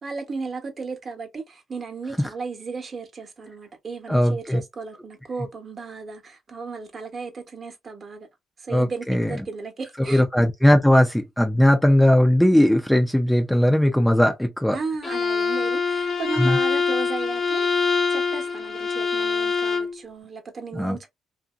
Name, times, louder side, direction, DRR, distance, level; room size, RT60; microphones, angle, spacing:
voice 1, 0.0-8.3 8.6-10.2 14.7-17.7 18.1-21.1, right 4 dB, 40° right, 1.0 m, -35 dB
voice 2, 4.1-4.6 8.7-9.4 10.0-14.8 16.4-16.6 20.7-21.0, left 1 dB, 5° left, 0.5 m, -18 dB
Bowed string instrument, 15.0-20.0, left 5 dB, 45° left, 0.7 m, -24 dB
2.6 x 2.6 x 2.4 m
cardioid pair, 90°, 0 cm